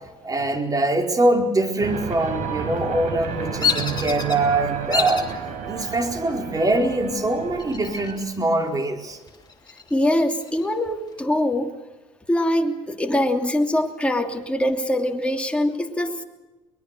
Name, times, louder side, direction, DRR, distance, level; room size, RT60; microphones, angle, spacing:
voice 1, 0.2-5.4 5.7-9.2, right 2 dB, 25° right, 3 dB, 4.4 m, -23 dB
sound 1, 1.8-8.2, right 5 dB, 65° right, 5.3 m, -32 dB
Bird vocalization bird call bird song, 3.6-4.4 4.9-5.3 5.9-6.4 7.6-8.4 8.7-8.8 9.3-10.7, left 6 dB, 30° left, 3.0 m, -27 dB
voice 2, 9.9-11.7 12.3-16.2, left 1 dB, 10° left, 3 dB, 2.9 m, -23 dB
23.0 x 20.5 x 6.7 m, 1.1 s
supercardioid pair, 80°, 14 cm